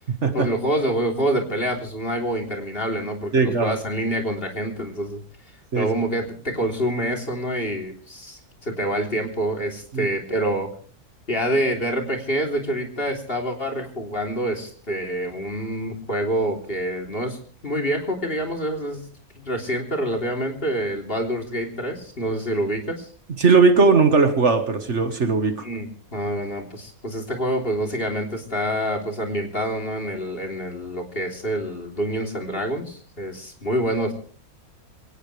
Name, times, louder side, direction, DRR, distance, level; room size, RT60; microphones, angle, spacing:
voice 1, 0.3-5.2 5.8-10.7 11.3-17.4 17.6-19.1 19.4-23.1 25.6-34.1, right 1 dB, 40° left, 2 dB, 3.6 m, -26 dB
voice 2, 3.3-3.7 5.7-5.9 9.9-10.1 23.4-25.7, right 4 dB, 50° right, 8 dB, 1.8 m, -18 dB
23.0 x 18.5 x 3.3 m, 0.43 s
omnidirectional pair, 1.6 m